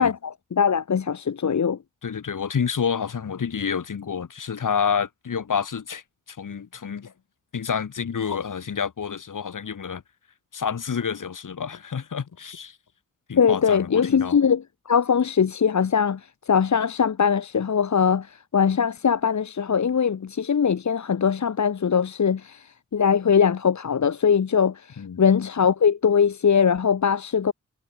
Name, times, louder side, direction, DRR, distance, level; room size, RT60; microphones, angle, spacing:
voice 1, 0.0-1.8 13.4-27.5, left 7 dB, 65° left, 1.2 m, -21 dB
voice 2, 2.0-7.1 7.5-10.0 10.5-12.8 13.3-14.4 25.0-25.2, left 6 dB, 85° left, 4.1 m, -29 dB
cardioid pair, 50°, 31 cm